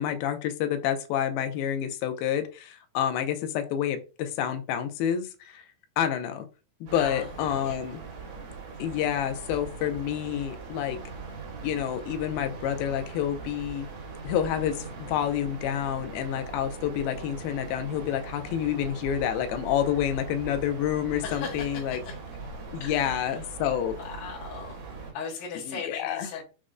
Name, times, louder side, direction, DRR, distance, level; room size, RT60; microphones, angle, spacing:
voice 1, 0.0-5.6 6.0-6.5 6.8-8.0 8.8-11.0 11.6-13.9 14.2-22.0 22.7-24.0 25.7-26.3, left 10 dB, 90° left, 8 dB, 2.4 m, -28 dB
voice 2, 6.9-7.8 21.2-22.2 22.8-23.4 24.0-24.9 25.1-26.4, left 6 dB, 70° left, -4 dB, 2.1 m, -38 dB
sound 1, 6.9-25.1, right 4 dB, 60° right, 2.1 m, -41 dB
6.2 x 2.1 x 2.4 m, 0.33 s
omnidirectional pair, 4.2 m